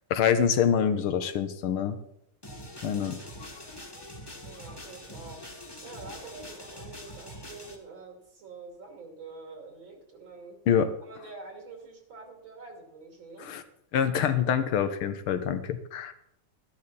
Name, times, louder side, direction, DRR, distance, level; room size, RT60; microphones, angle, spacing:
voice 1, 0.1-2.0 2.8-3.2 10.7-10.9 13.4-13.6 13.9-16.1, left 8 dB, 85° left, 10 dB, 1.9 m, -25 dB
sound 1, 2.4-7.8, left 1 dB, 15° left, 1.5 m, -44 dB
voice 2, 4.4-5.5 5.8-10.6 11.0-13.5, right 3 dB, 65° right, 2 dB, 3.3 m, -46 dB
13.5 x 11.0 x 4.1 m, 0.75 s
omnidirectional pair, 2.3 m